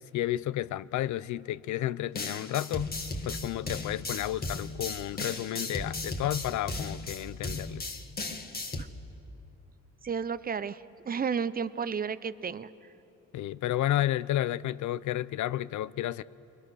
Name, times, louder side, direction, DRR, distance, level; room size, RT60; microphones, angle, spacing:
voice 1, 0.0-3.0 3.2-7.9 13.3-16.2, left 13 dB, 75° left, 0.6 m, -31 dB
sound 1, 2.2-8.8, left 2 dB, 30° left, 1.8 m, -36 dB
voice 2, 10.0-12.7, right 6 dB, 30° right, 0.7 m, -32 dB
28.0 x 22.0 x 6.3 m
cardioid pair, 90°, 30 cm